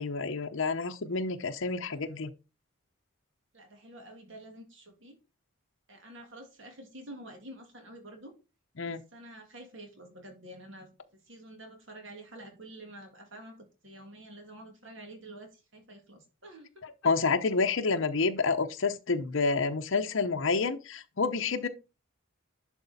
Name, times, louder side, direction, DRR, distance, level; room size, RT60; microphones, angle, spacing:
voice 1, 0.0-2.3 8.8-9.0 16.8-21.7, left 4 dB, 65° left, 0.8 m, -29 dB
voice 2, 3.5-5.2 5.9-8.3 8.9-16.8, right 1 dB, 60° right, 2.0 m, -49 dB
11.0 x 4.3 x 4.1 m
head